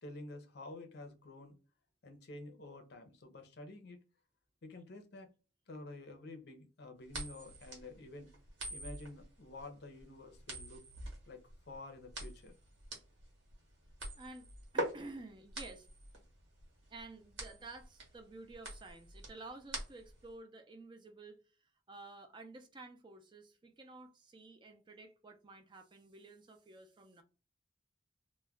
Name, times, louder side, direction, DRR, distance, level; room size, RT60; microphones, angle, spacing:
voice 1, 0.0-1.6 2.0-4.0 4.6-5.3 5.7-8.3 8.7-10.8 11.3-12.6, left 2 dB, 60° left, 0.6 m, -50 dB
sound 1, 7.1-20.3, right 1 dB, 85° right, 1.0 m, -44 dB
voice 2, 14.2-15.9 16.9-21.4 21.9-27.2, right 2 dB, 25° right, 0.4 m, -52 dB
2.2 x 2.1 x 3.3 m
head